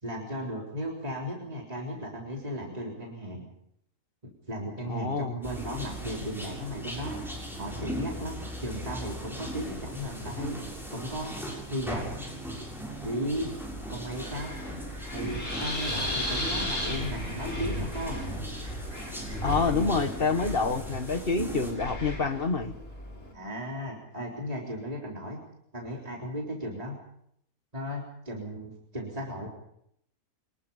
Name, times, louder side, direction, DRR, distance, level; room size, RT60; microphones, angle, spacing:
voice 1, 0.0-3.5 4.2-7.2 7.6-10.6 10.9-12.3 13.0-13.5 13.9-14.5 15.1-18.2 19.6-19.8 23.3-25.4 25.7-27.0 27.7-29.5, equal, 25° right, -2 dB, 3.8 m, -36 dB
voice 2, 4.9-5.4 19.4-22.7, left 4 dB, 40° left, 8 dB, 1.5 m, -27 dB
sound 1, 5.4-21.7, right 1 dB, ahead, 7.4 m, -38 dB
Wind, 13.2-23.3, left 1 dB, 55° left, 6.3 m, -36 dB
25.0 x 20.5 x 5.5 m, 0.72 s
omnidirectional pair, 1.6 m